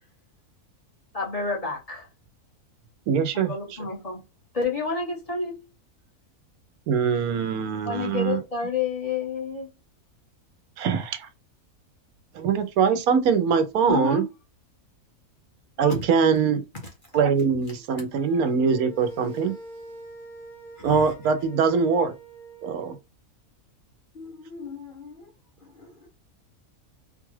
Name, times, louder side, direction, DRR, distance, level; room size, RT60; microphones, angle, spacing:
voice 1, 1.1-2.1 3.3-4.2 4.5-5.6 7.8-9.7 13.9-14.3 15.8-16.0, left 4 dB, 25° left, 1.2 m, -29 dB
voice 2, 3.1-3.5 6.9-8.4 10.8-11.3 12.3-14.2 15.8-16.6 17.1-19.5 20.8-22.1 22.6-23.0, right 6 dB, 85° right, 1.1 m, -23 dB
sound 1, 18.1-23.0, equal, ahead, 0.9 m, -43 dB
voice 3, 20.8-21.1 24.1-25.3 25.6-26.1, left 4 dB, 45° left, 0.8 m, -42 dB
4.1 x 2.4 x 3.1 m
omnidirectional pair, 1.5 m